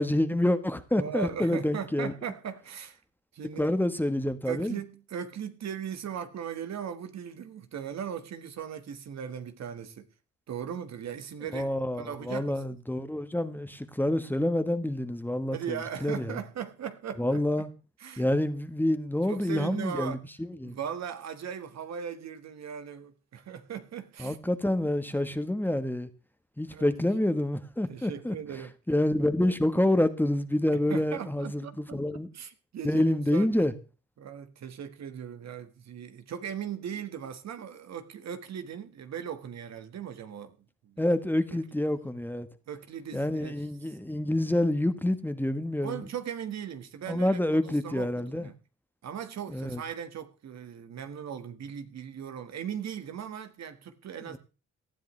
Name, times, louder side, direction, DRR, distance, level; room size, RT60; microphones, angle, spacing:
voice 1, 0.0-2.1 3.6-4.8 11.5-16.4 17.2-17.7 18.2-20.8 24.2-26.1 26.6-28.4 28.9-32.3 32.8-33.7 41.0-42.5 43.1-46.0 47.1-48.5 49.5-49.8, left 1 dB, 5° left, 1.2 m, -27 dB
voice 2, 0.9-3.0 3.3-3.7 4.5-10.1 10.5-11.7 12.0-12.6 15.5-17.4 18.0-18.3 19.3-20.2 20.6-24.4 26.7-26.9 27.9-28.7 30.7-33.5 34.2-40.6 40.8-41.1 41.5-41.6 42.7-43.6 45.8-47.4 47.6-48.6 49.0-54.4, right 8 dB, 60° right, 1.6 m, -38 dB
18.5 x 12.5 x 3.2 m
cardioid pair, 90°, 30 cm